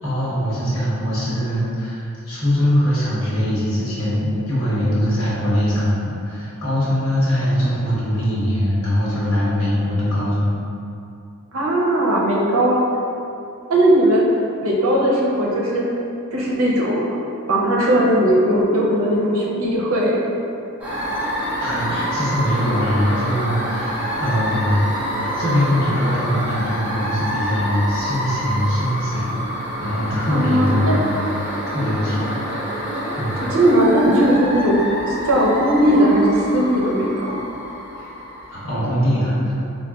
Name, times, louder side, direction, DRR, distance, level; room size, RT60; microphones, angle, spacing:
voice 1, 0.0-10.6 21.6-24.8 25.4-31.1 31.7-32.3 33.2-33.3 38.5-39.5, equal, 70° left, -10 dB, 1.0 m, -22 dB
voice 2, 11.5-12.8 13.7-14.2 14.6-15.9 16.3-20.2 30.3-31.0 33.5-37.4, right 1 dB, 75° right, -3 dB, 0.5 m, -18 dB
sound 1, 20.8-38.8, equal, 5° right, 0.5 m, -27 dB
3.9 x 2.1 x 2.3 m, 2.7 s
head